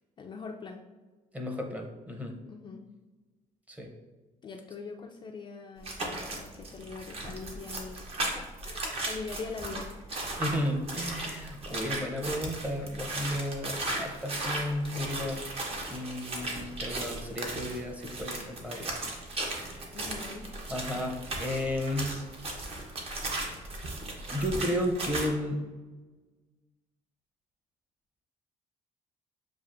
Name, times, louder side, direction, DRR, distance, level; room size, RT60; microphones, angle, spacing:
voice 1, 0.2-0.8 2.5-2.8 4.4-9.9 19.9-20.5, left 4 dB, 30° left, 2 dB, 0.3 m, -42 dB
voice 2, 1.3-2.4 3.7-3.9 10.4-15.4 15.9-18.9 19.3-19.9 20.7-22.2 23.7-23.9 24.3-25.6, left 1 dB, 10° right, 2 dB, 0.7 m, -33 dB
sound 1, 5.8-25.3, right 2 dB, 40° right, 0.9 m, -36 dB
7.1 x 2.4 x 2.5 m, 1.3 s
cardioid pair, 100°, 15 cm